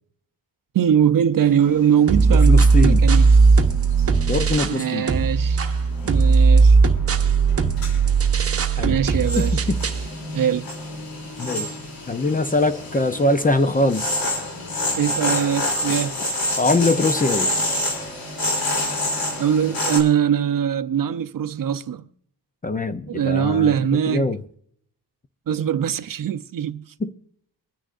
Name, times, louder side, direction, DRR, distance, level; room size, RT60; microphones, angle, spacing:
voice 1, 0.7-3.3 4.0-4.1 4.6-5.7 6.0-6.8 8.8-9.6 10.3-10.7 15.0-16.3 19.4-22.1 23.1-24.3 25.5-26.9, right 9 dB, 55° right, 0.6 m, -22 dB
sound 1, 1.4-20.0, left 1 dB, 55° left, 3.0 m, -29 dB
sound 2, 2.1-4.8 5.1-10.1, right 4 dB, 35° right, 0.9 m, -17 dB
voice 2, 2.5-3.0 4.3-5.1 8.8-9.0 9.4-9.8 11.4-11.8 12.1-14.3 16.6-17.5 22.6-23.7 24.1-24.4 27.0-27.1, left 2 dB, 20° left, 0.5 m, -22 dB
24.5 x 10.0 x 2.5 m
wide cardioid pair, 160°, 41 cm